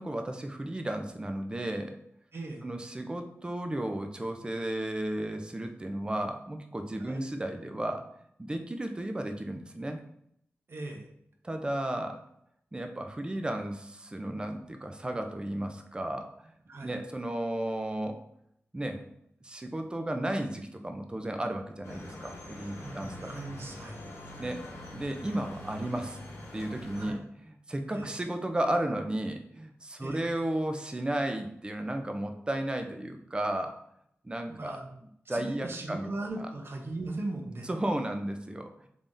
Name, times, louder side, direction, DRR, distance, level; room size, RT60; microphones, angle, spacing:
voice 1, 0.0-1.9 2.6-8.1 8.4-10.0 11.4-12.2 12.7-16.5 16.8-18.2 18.7-19.0 19.4-23.3 24.4-24.6 24.9-26.2 26.5-33.7 34.2-34.8 35.3-36.1 36.4-36.5 37.6-38.9, right 1 dB, 20° right, 5 dB, 0.5 m, -34 dB
voice 2, 2.3-2.6 7.0-7.2 10.7-11.1 16.7-17.0 22.7-24.0 26.9-27.2 27.9-28.1 30.0-30.2 34.5-34.9 35.3-37.7, right 2 dB, 55° right, 1 dB, 0.8 m, -38 dB
sound 1, 21.8-27.1, left 1 dB, 90° left, 0.8 m, -44 dB
3.5 x 3.5 x 2.6 m, 0.71 s
cardioid pair, 65°, 5 cm